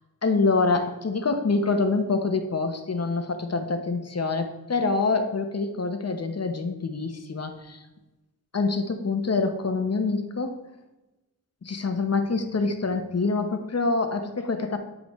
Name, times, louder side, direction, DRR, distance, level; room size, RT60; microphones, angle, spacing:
voice 1, 0.2-7.8 8.5-10.6 11.6-14.8, left 3 dB, 45° left, 6 dB, 0.9 m, -26 dB
9.9 x 5.0 x 3.1 m, 1.0 s
wide cardioid pair, 65°, 36 cm